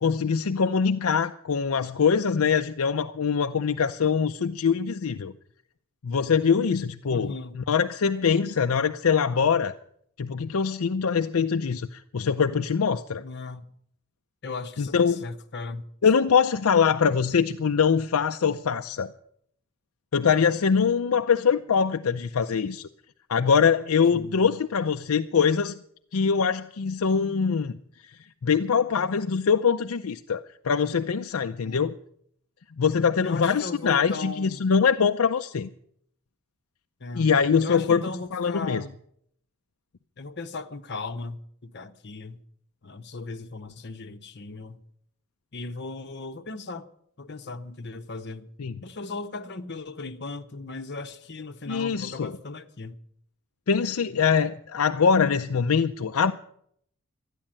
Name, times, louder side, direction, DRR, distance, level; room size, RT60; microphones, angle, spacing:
voice 1, 0.0-5.3 6.0-9.7 10.2-13.2 14.8-15.2 16.0-19.1 20.1-22.9 23.3-25.7 26.1-27.8 28.4-32.0 32.8-35.7 37.1-38.0 38.3-38.8 48.6-48.8 51.7-52.3 53.7-56.3, left 6 dB, 70° left, 0.5 m, -23 dB
voice 2, 7.1-7.6 13.2-13.7 14.4-15.9 24.1-24.4 31.6-31.9 33.2-34.6 37.0-37.3 37.6-38.9 40.2-42.4 42.8-44.8 45.5-46.9 47.2-48.5 48.8-53.0, left 3 dB, 50° left, 0.9 m, -37 dB
13.0 x 10.0 x 8.7 m
head